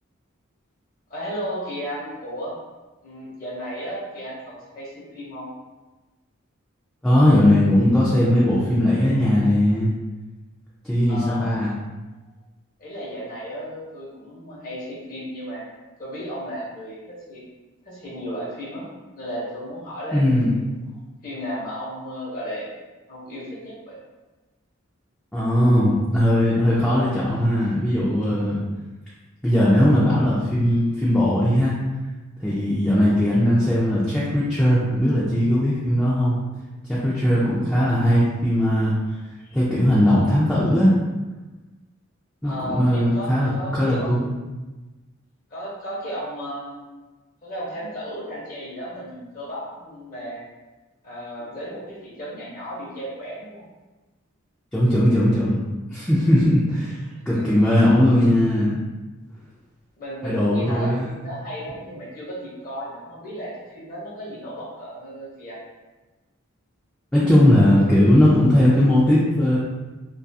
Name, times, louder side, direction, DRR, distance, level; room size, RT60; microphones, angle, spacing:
voice 1, 1.1-2.5 3.0-5.5 11.1-11.5 12.8-15.6 16.0-17.4 17.8-18.8 19.2-20.2 20.5-20.7 21.2-22.7 23.1-24.0 42.4-44.3 45.5-46.8 47.4-50.4 51.0-53.6 57.3-57.6 60.0-65.6, equal, 40° left, -7 dB, 0.7 m, -34 dB
voice 2, 7.0-9.9 10.8-11.7 20.1-20.5 25.3-28.6 29.4-31.7 32.4-36.4 36.9-38.9 39.5-40.9 42.4-44.2 54.7-55.6 55.9-57.0 57.3-58.8 60.2-61.1 67.1-69.6, left 1 dB, 5° left, -9 dB, 0.3 m, -19 dB
2.3 x 2.3 x 2.6 m, 1.2 s
head